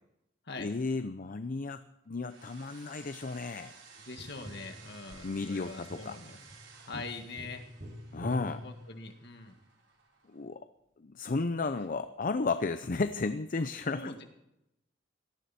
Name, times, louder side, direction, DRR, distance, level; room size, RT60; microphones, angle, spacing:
voice 1, 0.6-3.7 5.2-6.1 6.9-7.0 8.1-8.6 10.3-10.6 11.0-14.1, left 3 dB, 45° left, 10 dB, 0.6 m, -33 dB
sound 1, 2.3-10.4, right 5 dB, 85° right, 4.1 m, -56 dB
voice 2, 4.1-6.4 6.8-7.6 8.6-9.5 13.9-14.2, left 3 dB, 65° left, 5 dB, 1.9 m, -43 dB
Tap, 4.2-9.5 12.1-12.2, equal, 35° right, 2.3 m, -47 dB
18.0 x 13.5 x 4.3 m, 0.85 s
head